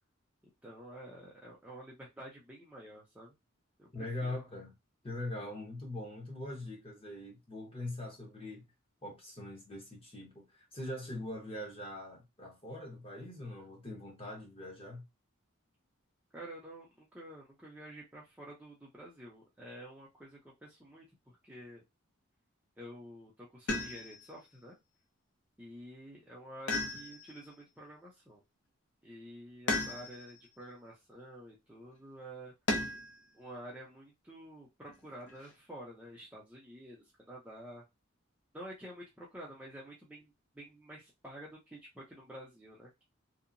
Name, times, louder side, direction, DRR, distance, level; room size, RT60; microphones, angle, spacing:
voice 1, 0.6-3.3 3.8-4.4 16.3-21.8 22.8-24.8 25.6-28.4 29.0-32.5 33.3-37.8 38.5-43.0, right 1 dB, 5° right, 0.5 m, -49 dB
voice 2, 3.9-4.7 5.0-8.6 9.0-15.0, left 1 dB, 25° left, 0.9 m, -42 dB
sound 1, 23.7-24.3 26.7-27.5 29.7-30.4 32.7-33.2 34.9-35.5, left 2 dB, 65° left, 0.6 m, -35 dB
2.8 x 2.1 x 2.5 m
head